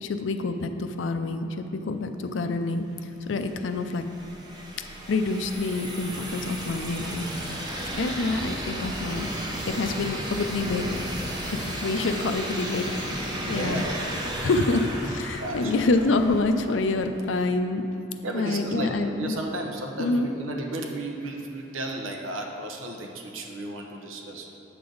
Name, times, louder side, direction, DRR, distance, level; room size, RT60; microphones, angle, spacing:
voice 1, 0.0-2.9 3.3-4.1 5.1-7.3 8.0-9.3 9.7-10.8 11.5-13.8 14.4-17.8 18.3-19.3 20.0-20.3, left 3 dB, 70° left, 8 dB, 0.5 m, -27 dB
sound 1, 3.3-17.0, right 1 dB, 20° right, 0.9 m, -34 dB
voice 2, 7.8-8.3 13.3-14.6 15.0-15.9 18.2-24.6, right 1 dB, 90° right, 2 dB, 0.9 m, -34 dB
8.8 x 6.8 x 3.9 m, 3.0 s
head